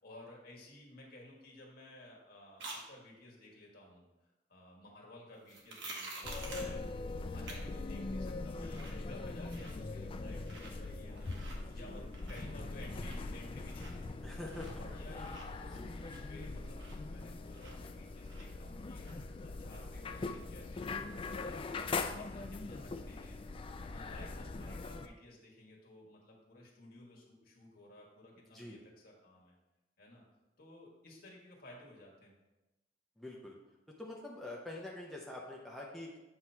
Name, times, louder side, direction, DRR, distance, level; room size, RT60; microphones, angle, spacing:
voice 1, 0.0-14.2 14.6-21.6 22.0-23.4 23.8-29.5 30.0-30.2 30.6-32.3, left 1 dB, 55° left, -2 dB, 1.7 m, -55 dB
sound 1, 2.6-2.8 5.5-6.8 7.5-7.6 8.0-8.1 8.4-9.0 9.3-9.9 10.4-10.7 11.1-11.6 12.0-12.6 12.9-14.9 15.2-18.0 18.3-19.3 19.7-19.8, right 2 dB, 90° right, 1.3 m, -49 dB
sound 2, 6.2-25.1, left 3 dB, 30° left, 0.3 m, -41 dB
voice 2, 11.6-12.0 14.2-14.7 15.2-15.9 28.5-28.8 33.2-33.5 34.0-36.2, left 1 dB, ahead, -3 dB, 0.7 m, -46 dB
7.8 x 3.0 x 5.6 m, 1.0 s
head